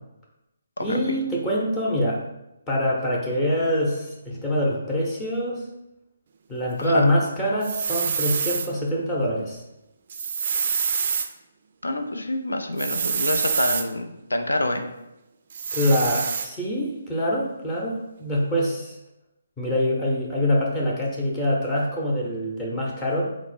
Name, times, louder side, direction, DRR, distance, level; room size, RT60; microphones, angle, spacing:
voice 1, 0.8-2.2 2.7-5.6 6.5-9.6 15.7-19.0 19.6-23.3, equal, 15° left, -4 dB, 0.7 m, -24 dB
sound 1, 7.6-8.7 10.1-11.3 12.8-13.9 15.5-16.5, right 6 dB, 50° right, 0.3 m, -26 dB
voice 2, 11.8-14.9, left 1 dB, 85° left, 6 dB, 0.5 m, -27 dB
4.3 x 2.0 x 4.2 m, 0.92 s
figure-of-eight pair, 150°, 0 cm